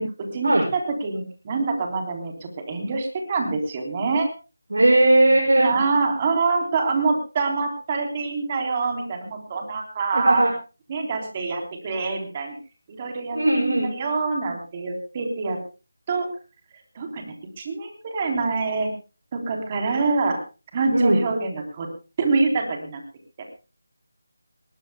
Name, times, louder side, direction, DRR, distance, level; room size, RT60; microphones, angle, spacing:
voice 1, 0.0-4.3 5.6-10.5 10.9-12.6 12.9-15.6 16.1-16.3 17.0-18.9 19.3-20.4 20.7-21.9 22.2-23.0, right 4 dB, 25° right, 3 dB, 3.5 m, -25 dB
voice 2, 4.7-5.8 10.1-10.5 13.3-13.9 20.9-21.2, right 1 dB, 90° right, 0 dB, 6.1 m, -18 dB
22.0 x 19.5 x 2.2 m, 0.32 s
figure-of-eight pair, 170°, 0 cm